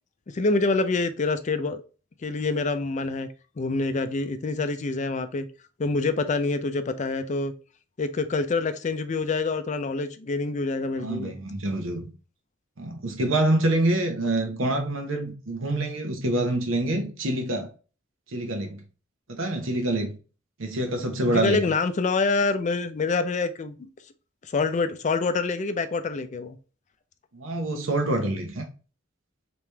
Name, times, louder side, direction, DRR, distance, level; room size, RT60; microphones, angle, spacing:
voice 1, 0.3-1.8 2.2-3.3 3.6-5.5 5.8-7.5 8.0-11.4 21.3-23.9 24.4-26.6, left 3 dB, 35° left, 0.4 m, -26 dB
voice 2, 11.0-12.1 12.8-17.7 18.3-18.8 19.3-20.1 20.6-21.7 27.3-28.6, right 1 dB, 85° right, 0.9 m, -26 dB
3.2 x 3.0 x 3.3 m
head